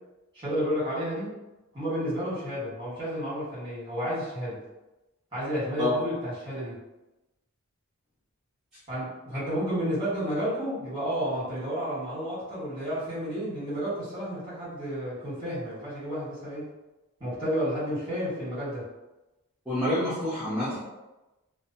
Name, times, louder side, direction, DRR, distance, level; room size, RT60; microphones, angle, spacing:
voice 1, 0.3-1.3 1.7-4.6 5.3-6.8 8.9-16.7 17.2-18.9, equal, 20° right, -10 dB, 1.5 m, -31 dB
voice 2, 19.7-20.8, left 1 dB, 5° right, -14 dB, 0.6 m, -27 dB
2.6 x 2.2 x 2.7 m, 1.0 s
head